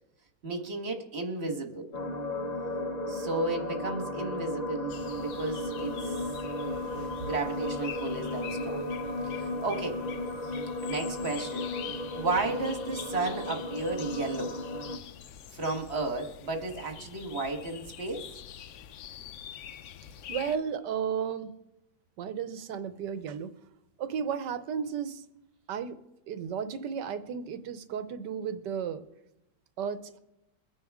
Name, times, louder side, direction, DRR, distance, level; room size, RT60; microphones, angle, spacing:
voice 1, 0.4-1.9 3.1-6.1 7.2-8.9 9.2-10.1 10.8-11.7 12.1-14.6 15.5-18.2, right 2 dB, 40° right, 4 dB, 1.5 m, -33 dB
sound 1, 1.9-15.0, left 1 dB, 45° left, 0.5 m, -35 dB
sound 2, 4.9-20.6, left 10 dB, 90° left, 0.6 m, -45 dB
voice 2, 20.3-21.5 22.2-23.5 24.0-25.3 25.7-26.0 26.3-29.0 29.8-30.2, right 7 dB, 75° right, 11 dB, 1.4 m, -34 dB
23.0 x 9.5 x 3.6 m, 0.90 s
omnidirectional pair, 1.9 m